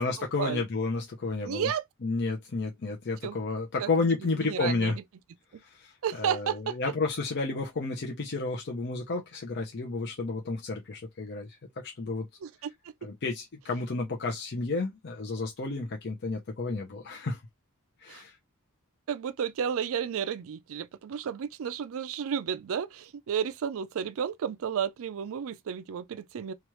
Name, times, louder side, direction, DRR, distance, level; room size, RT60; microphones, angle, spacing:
voice 1, 0.0-1.7 2.0-5.0 5.6-11.5 11.8-12.2 13.0-17.4 18.0-18.4, left 3 dB, 50° left, 0.6 m, -31 dB
voice 2, 1.4-1.8 3.2-3.4 3.8-3.9 4.2-4.9 6.0-6.8 12.4-12.7 18.1-18.2 19.1-26.5, right 8 dB, 65° right, 0.4 m, -32 dB
3.0 x 2.4 x 3.0 m
head